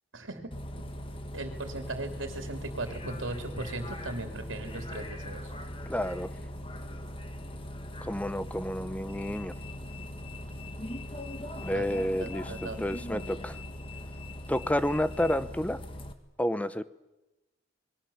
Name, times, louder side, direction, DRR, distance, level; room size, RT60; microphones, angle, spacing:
voice 1, 0.1-0.5 1.3-5.4 11.7-11.9 12.2-12.9, right 2 dB, 75° right, 5 dB, 3.2 m, -38 dB
Bus, 0.5-16.1, left 1 dB, 25° left, 1.7 m, -40 dB
voice 2, 5.9-6.3 8.0-9.5 11.6-13.6 14.5-15.8 16.4-16.8, left 1 dB, 5° left, 14 dB, 0.8 m, -30 dB
27.5 x 21.5 x 7.3 m, 1.0 s
head